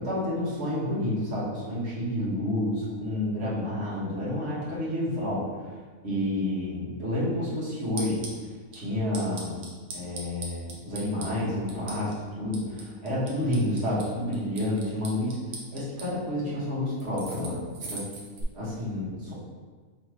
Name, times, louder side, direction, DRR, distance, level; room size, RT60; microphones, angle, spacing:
voice 1, 0.0-5.4 6.0-8.2 8.7-9.6 9.9-15.4 15.7-18.0 18.5-19.3, left 1 dB, 55° right, -9 dB, 1.6 m, -29 dB
sound 1, 7.8-8.4 8.7-8.8 9.1-11.3 11.7-12.1 12.5-14.1 14.3-16.1 17.0-18.4, right 3 dB, 90° right, 1.3 m, -39 dB
3.3 x 3.2 x 4.5 m, 1.5 s
omnidirectional pair, 1.5 m